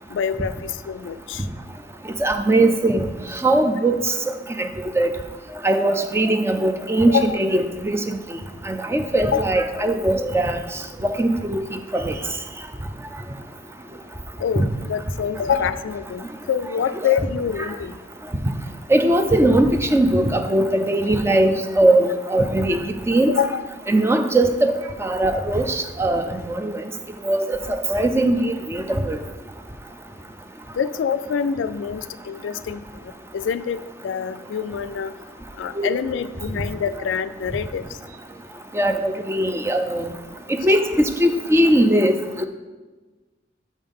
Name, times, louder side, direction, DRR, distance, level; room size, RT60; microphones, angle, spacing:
voice 1, 0.1-1.5 7.1-7.4 9.3-9.4 14.4-18.0 23.3-23.7 30.7-32.8 33.3-35.1 35.6-37.8, left 7 dB, 85° left, 11 dB, 0.3 m, -25 dB
voice 2, 2.2-4.1 4.6-5.1 5.6-8.2 8.7-10.6 11.0-12.2 14.6-14.7 17.6-17.7 18.9-22.8 23.1-23.3 23.9-24.7 25.0-26.7 27.2-27.6 27.9-29.2 35.8-35.9 38.7-40.1 40.6-42.5, right 1 dB, 15° right, 7 dB, 0.4 m, -20 dB
6.2 x 5.6 x 5.2 m, 1.2 s
head